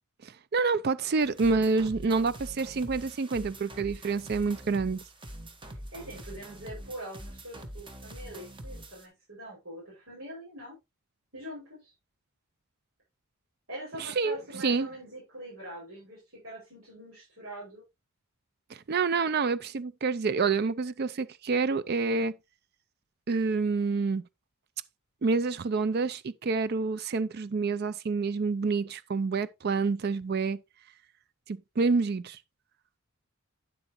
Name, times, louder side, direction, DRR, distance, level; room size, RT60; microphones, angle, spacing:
voice 1, 0.2-5.0 14.0-14.9 18.7-22.3 23.3-24.2 25.2-30.6 31.5-32.4, right 4 dB, 45° right, 0.4 m, -28 dB
sound 1, 1.2-9.1, right 1 dB, 20° right, 1.3 m, -44 dB
voice 2, 5.7-10.7 11.3-11.9 13.7-17.8, right 1 dB, 70° right, 6.2 m, -43 dB
9.9 x 7.8 x 3.0 m
head